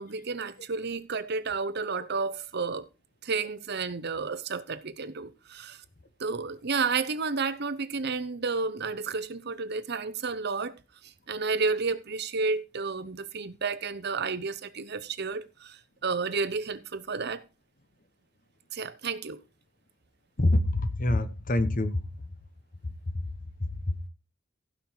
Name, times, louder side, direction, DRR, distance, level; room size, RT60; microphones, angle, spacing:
voice 1, 0.0-2.9 3.2-5.8 6.2-10.7 11.3-17.4 18.7-19.4, right 4 dB, 55° right, 0.9 m, -31 dB
voice 2, 20.4-22.1 23.1-23.3 23.6-24.1, left 1 dB, 40° left, 1.1 m, -26 dB
16.0 x 5.6 x 4.5 m
head